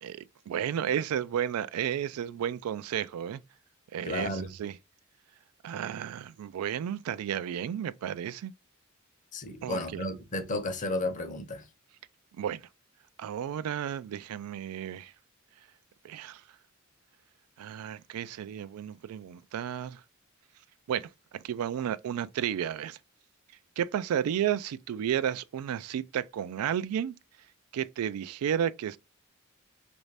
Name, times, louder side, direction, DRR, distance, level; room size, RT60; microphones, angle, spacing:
voice 1, 0.0-3.4 3.9-4.8 5.6-8.5 9.6-10.0 12.4-12.7 13.2-15.1 16.0-16.4 17.6-20.0 20.9-23.0 23.8-27.1 27.7-29.0, right 9 dB, 90° right, 0.3 m, -32 dB
voice 2, 4.0-4.5 9.3-11.6, left 2 dB, 35° left, 0.7 m, -33 dB
3.1 x 2.6 x 3.2 m
head